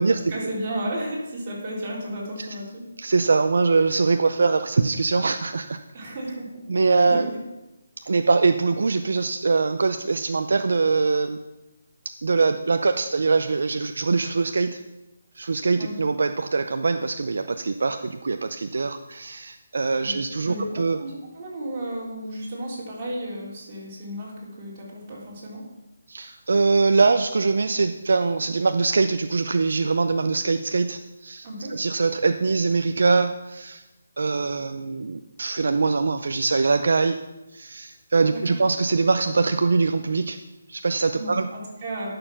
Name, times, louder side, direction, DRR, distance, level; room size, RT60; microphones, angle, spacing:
voice 1, 0.3-2.8 5.9-6.6 7.1-7.4 15.8-15.9 20.0-20.2 20.5-25.6 31.4-31.7 38.3-38.6 41.2-42.1, right 1 dB, 25° right, -6 dB, 3.8 m, -33 dB
voice 2, 3.0-5.8 6.7-7.3 8.0-11.4 12.2-14.8 15.4-21.0 26.1-33.8 34.2-37.2 37.5-40.4 40.7-41.5, right 4 dB, 70° right, 8 dB, 0.6 m, -23 dB
11.0 x 6.7 x 5.9 m, 0.99 s
hypercardioid pair, 165°, 0 cm